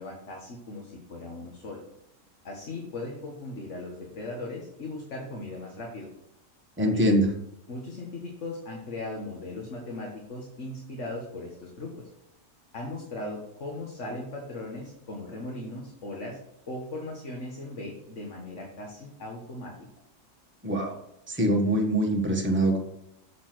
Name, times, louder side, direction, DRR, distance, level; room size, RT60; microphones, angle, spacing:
voice 1, 0.0-1.8 2.4-6.1 6.8-7.0 7.7-12.1 12.7-16.4 16.7-19.7, left 2 dB, 65° left, -1 dB, 1.8 m, -38 dB
voice 2, 6.8-7.3 20.6-21.0 21.3-22.8, right 1 dB, 10° right, 0 dB, 1.4 m, -23 dB
7.3 x 6.9 x 6.0 m, 0.82 s
omnidirectional pair, 1.3 m